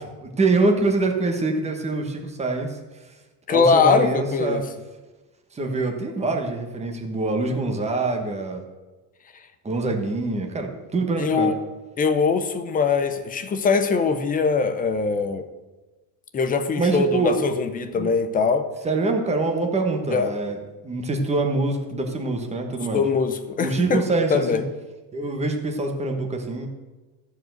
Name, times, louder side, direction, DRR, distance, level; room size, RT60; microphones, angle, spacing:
voice 1, 0.4-2.8 3.5-4.6 5.5-8.6 9.6-11.5 16.8-17.3 17.9-18.1 18.8-23.0 23.6-24.6 25.1-26.7, right 3 dB, 15° right, 3 dB, 1.2 m, -24 dB
voice 2, 3.5-4.6 11.2-11.6 12.0-15.4 16.3-18.7 20.1-20.3 22.9-24.0 24.3-24.6, left 5 dB, 20° left, 9 dB, 0.6 m, -22 dB
13.5 x 4.9 x 7.8 m, 1.2 s
cardioid pair, 160°, 47 cm